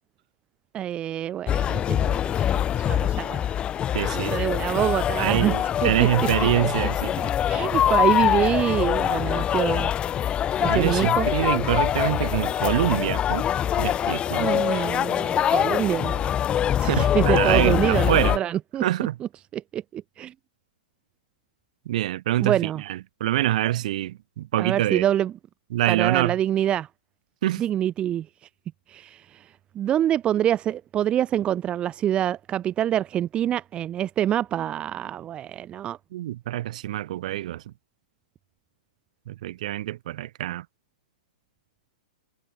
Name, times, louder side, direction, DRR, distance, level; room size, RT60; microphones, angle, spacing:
voice 1, 0.7-3.6 4.0-5.5 5.8-6.1 7.5-9.9 10.6-11.3 14.3-16.3 16.8-18.8 19.5-20.3 22.4-22.8 24.6-25.3 25.9-26.9 27.6-28.3 28.9-36.0, right 11 dB, 25° right, 0.8 m, -26 dB
sound 1, 1.5-18.4, left 10 dB, 20° left, 1.7 m, -24 dB
voice 2, 3.9-4.4 5.2-7.3 10.6-13.5 13.8-14.6 16.8-18.4 18.8-19.2 21.9-25.1 25.7-26.4 27.4-27.6 36.1-37.6 39.3-40.7, right 14 dB, 60° right, 5.0 m, -25 dB
hypercardioid pair, 125°, 5 cm